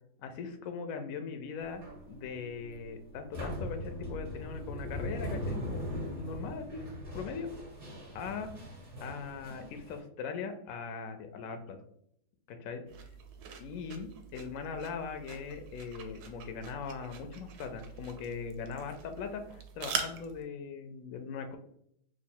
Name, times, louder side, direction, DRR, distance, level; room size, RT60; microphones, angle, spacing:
voice 1, 0.2-6.9 7.1-7.5 8.1-8.5 9.0-11.8 12.5-12.8 13.6-21.6, left 5 dB, 70° left, 7 dB, 0.8 m, -40 dB
sound 1, 1.6-10.0, equal, 30° right, 0.9 m, -40 dB
sound 2, 12.9-20.4, right 6 dB, 75° right, 1.1 m, -43 dB
3.0 x 2.4 x 4.3 m, 0.71 s
omnidirectional pair, 1.8 m